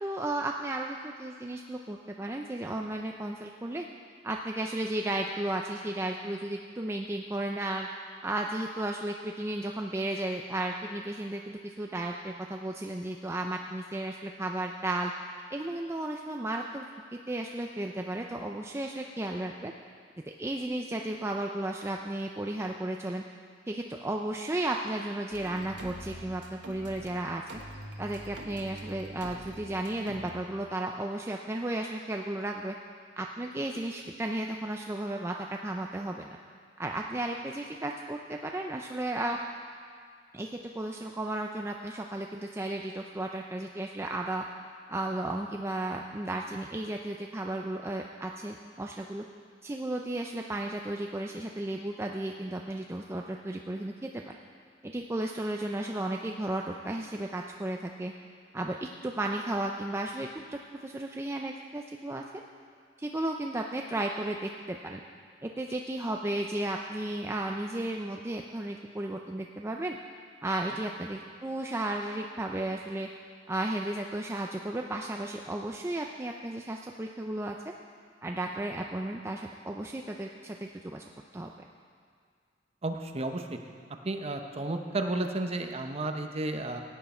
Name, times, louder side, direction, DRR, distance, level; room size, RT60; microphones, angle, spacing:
voice 1, 0.0-3.9 4.2-7.9 8.2-15.1 15.5-16.8 17.3-19.7 20.4-23.2 23.7-27.4 28.0-32.7 33.2-36.4 36.8-39.4 40.3-44.4 44.9-49.2 49.6-54.3 54.8-58.1 58.5-62.2 63.0-65.0 65.4-70.0 70.4-73.1 73.5-77.5 78.2-81.0 81.3-81.5, right 1 dB, 15° right, 1 dB, 0.4 m, -34 dB
sound 1, 25.3-27.1 27.5-30.3, right 1 dB, 85° right, 1.4 m, -44 dB
voice 2, 82.8-83.4 84.0-86.8, right 2 dB, 35° right, 5 dB, 0.8 m, -32 dB
16.0 x 9.4 x 4.3 m, 2.1 s
head